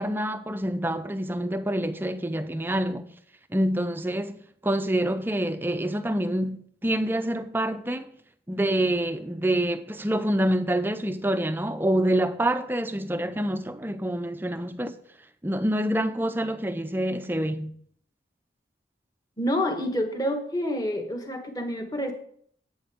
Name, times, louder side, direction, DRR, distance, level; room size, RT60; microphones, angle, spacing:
voice 1, 0.0-3.1 3.5-4.4 4.6-8.1 8.5-15.0 15.4-17.7, right 1 dB, 10° right, 0.5 m, -26 dB
voice 2, 19.4-22.1, left 1 dB, 20° left, 1.3 m, -28 dB
11.0 x 8.6 x 3.6 m
head